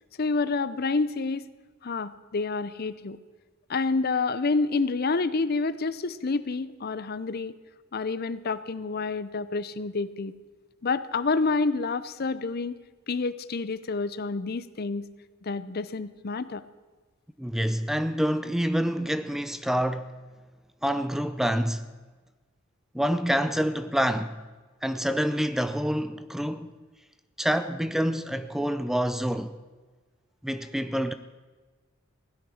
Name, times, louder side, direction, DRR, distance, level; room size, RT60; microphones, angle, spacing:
voice 1, 0.2-1.4 1.8-3.2 3.7-7.5 7.9-10.3 10.8-12.8 13.1-15.1 15.4-16.6, left 3 dB, 50° left, 0.6 m, -28 dB
voice 2, 17.4-20.1 20.8-21.9 22.9-24.4 24.8-26.8 27.4-29.6 30.4-31.1, equal, ahead, 0.5 m, -27 dB
16.5 x 11.5 x 6.4 m
head